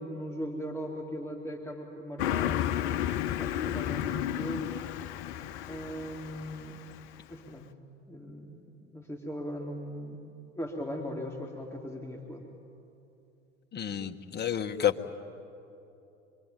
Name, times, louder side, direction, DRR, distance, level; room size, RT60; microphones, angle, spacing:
voice 1, 0.0-2.7 3.3-4.8 5.7-6.8 7.3-7.7 8.1-10.2 10.6-12.5, equal, 5° left, 0 dB, 2.6 m, -39 dB
Car passing by, 2.2-7.2, left 11 dB, 60° left, 1.0 m, -32 dB
voice 2, 13.7-15.1, left 9 dB, 30° left, 5 dB, 1.5 m, -30 dB
25.5 x 23.0 x 9.3 m, 2.8 s
hypercardioid pair, 80°, 36 cm